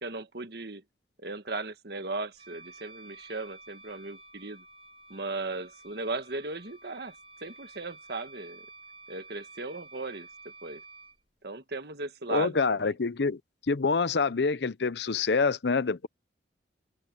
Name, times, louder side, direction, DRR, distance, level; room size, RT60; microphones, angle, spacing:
voice 1, 0.0-0.8 1.2-4.6 5.1-7.1 7.4-8.6 9.1-10.3 10.6-10.8 11.4-12.9, right 3 dB, 60° right, 1.6 m, -37 dB
Wind instrument woodwind instrument, 2.4-11.2, right 3 dB, 30° right, 4.1 m, -51 dB
voice 2, 12.3-13.4 13.7-16.1, left 4 dB, 70° left, 0.7 m, -26 dB
head